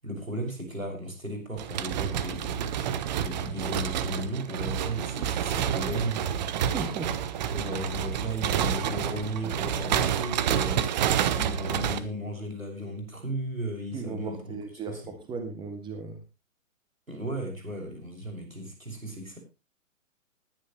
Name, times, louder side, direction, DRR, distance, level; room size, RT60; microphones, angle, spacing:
voice 1, 0.0-2.7 3.1-6.2 7.5-11.0 11.3-14.6 14.9-15.0 17.1-19.4, right 1 dB, 90° right, 3 dB, 6.3 m, -35 dB
sound 1, 1.6-12.0, right 9 dB, 35° right, 1.2 m, -29 dB
voice 2, 6.6-7.2 13.9-16.2, right 4 dB, 10° right, 7 dB, 2.2 m, -36 dB
20.0 x 11.5 x 3.1 m, 0.28 s
figure-of-eight pair, 125°, 40 cm